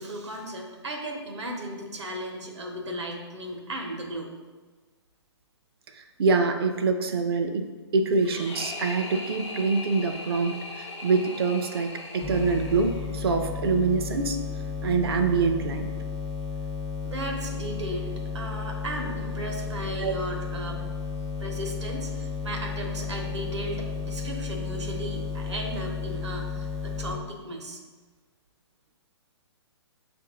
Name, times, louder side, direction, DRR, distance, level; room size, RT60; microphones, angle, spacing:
voice 1, 0.0-4.3 17.0-20.9 21.4-27.8, right 1 dB, 80° right, 2 dB, 0.9 m, -35 dB
voice 2, 5.9-14.4 14.8-15.9 20.0-20.1, right 4 dB, 55° right, 6 dB, 0.5 m, -25 dB
sound 1, 8.2-13.3, left 2 dB, 80° left, 0.8 m, -39 dB
sound 2, 12.2-27.2, left 5 dB, 5° left, 0.4 m, -33 dB
6.8 x 2.6 x 2.8 m, 1.3 s
hypercardioid pair, 130°, 15 cm